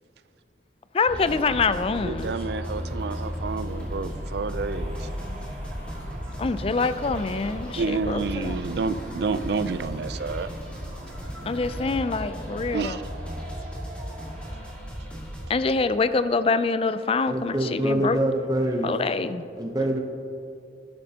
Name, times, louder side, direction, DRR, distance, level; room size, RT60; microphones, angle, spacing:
voice 1, 0.9-2.3 6.4-8.6 11.5-13.0 15.5-18.2 18.8-19.5, left 4 dB, 35° left, 13 dB, 0.4 m, -25 dB
sound 1, 1.1-15.5, equal, 5° left, 2.2 m, -36 dB
sound 2, 1.2-14.8, right 1 dB, 45° right, 1.1 m, -46 dB
voice 2, 2.0-5.1 7.8-10.5 12.7-13.0, right 4 dB, 65° right, 13 dB, 0.4 m, -29 dB
sound 3, 3.5-11.9, equal, 80° left, 1.4 m, -43 dB
voice 3, 17.3-19.0 19.6-20.0, right 1 dB, 20° right, 2 dB, 0.7 m, -25 dB
12.0 x 11.5 x 2.8 m, 2.7 s
head